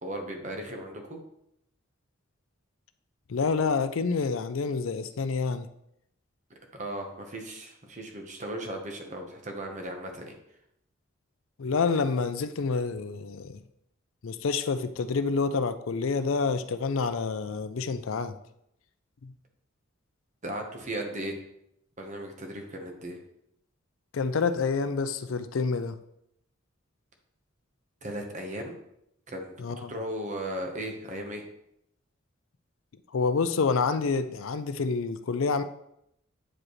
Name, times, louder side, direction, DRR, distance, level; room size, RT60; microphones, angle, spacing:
voice 1, 0.0-1.2 6.7-10.4 20.4-21.4 22.0-23.2 28.0-28.8 29.3-29.6 29.9-31.4, right 1 dB, 35° right, 3 dB, 1.1 m, -36 dB
voice 2, 3.3-5.7 11.6-13.6 14.2-18.3 19.2-19.3 24.1-25.9 29.6-29.9 33.1-35.6, left 4 dB, 75° left, 11 dB, 0.5 m, -28 dB
8.6 x 4.9 x 3.2 m, 0.77 s
head